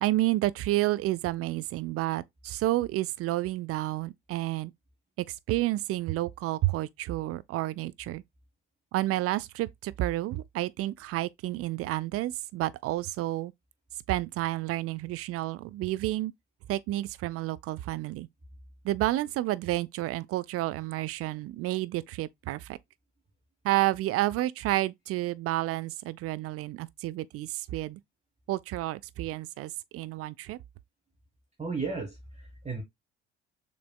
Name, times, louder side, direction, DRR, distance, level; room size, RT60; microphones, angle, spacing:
voice 1, 0.0-4.7 5.2-8.2 8.9-13.5 14.1-16.3 16.7-18.3 18.8-22.8 23.6-28.0 28.5-30.6, right 16 dB, 45° right, 0.4 m, -30 dB
voice 2, 31.6-32.8, right 4 dB, 20° right, 1.5 m, -34 dB
6.7 x 3.3 x 2.3 m
figure-of-eight pair, 50°, 33 cm